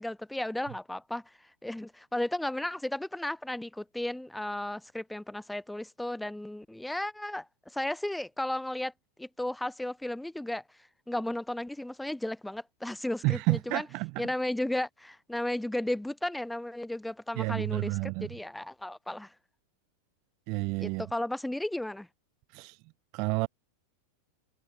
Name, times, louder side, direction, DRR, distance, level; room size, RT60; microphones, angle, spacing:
voice 1, 0.0-1.3 1.6-8.9 9.2-10.6 11.1-13.9 14.2-19.3 20.8-22.1, left 1 dB, 5° left, 7.9 m, -34 dB
voice 2, 13.2-14.2 17.3-18.3 20.5-21.1 22.5-22.8 23.1-23.5, right 29 dB, 45° right, 1.6 m, -30 dB
figure-of-eight pair, 90°, 0 cm